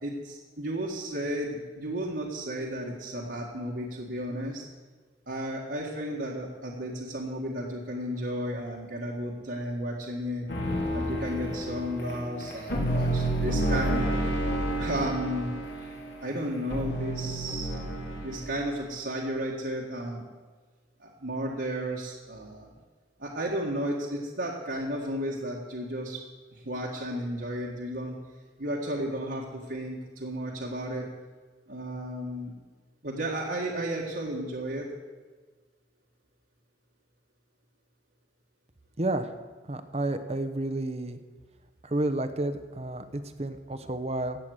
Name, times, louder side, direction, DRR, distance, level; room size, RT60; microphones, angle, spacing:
voice 1, 0.0-4.6 5.3-10.5 10.9-14.2 14.8-15.6 16.2-17.7 18.2-20.2 21.0-22.7 23.2-26.2 26.5-28.2 28.6-31.1 31.7-32.5 33.0-34.9, equal, 65° right, -3 dB, 1.7 m, -33 dB
sound 1, 10.5-18.7, right 1 dB, 75° left, 3.3 m, -30 dB
voice 2, 39.0-39.3 39.7-41.2 41.8-44.4, right 2 dB, 35° right, 10 dB, 0.9 m, -31 dB
16.0 x 8.5 x 6.5 m, 1.4 s
head